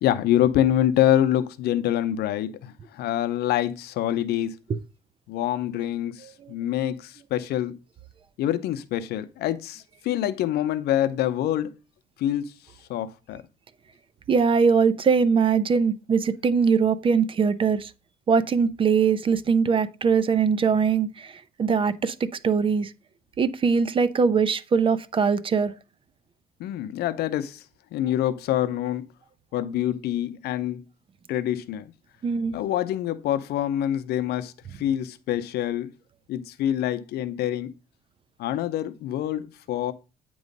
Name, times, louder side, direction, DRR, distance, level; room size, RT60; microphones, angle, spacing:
voice 1, 0.0-4.6 5.3-7.7 8.4-11.7 12.2-12.5 12.9-13.4 26.6-27.6 27.9-29.1 29.5-30.8 31.3-31.9 32.5-35.9 36.3-37.7 38.4-39.9, left 12 dB, 75° left, 0.6 m, -26 dB
voice 2, 14.3-17.9 18.3-22.9 23.4-25.7 32.2-32.5, right 5 dB, 30° right, 0.5 m, -22 dB
9.0 x 3.1 x 5.2 m
cardioid pair, 110°, 17 cm